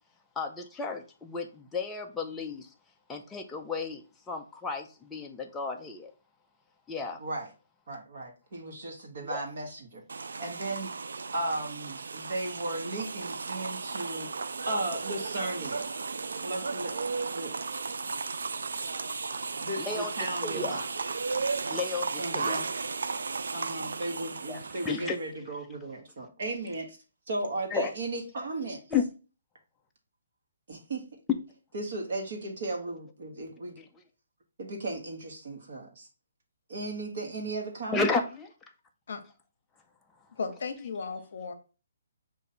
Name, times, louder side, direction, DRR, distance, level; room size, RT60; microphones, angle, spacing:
voice 1, 0.4-2.7 3.1-6.1 6.9-7.2 9.2-9.4 19.8-20.1 20.4-20.8 21.7-22.6 24.5-25.2 27.7-27.9 28.9-29.0 33.8-33.9 37.9-38.5, left 4 dB, 5° left, 0.3 m, -33 dB
voice 2, 7.9-10.0 10.4-14.3 14.7-15.9 16.4-16.9 17.3-17.5 19.6-20.9 22.2-22.7 23.5-27.0 27.3-28.8 30.7-31.0 31.7-33.8 34.6-36.1 36.7-38.1, right 2 dB, 45° right, 1.1 m, -35 dB
sound 1, 10.1-25.2, right 4 dB, 90° right, 0.3 m, -35 dB
voice 3, 40.4-41.5, left 5 dB, 55° left, 0.8 m, -35 dB
5.2 x 2.5 x 4.1 m
hypercardioid pair, 180°, 0 cm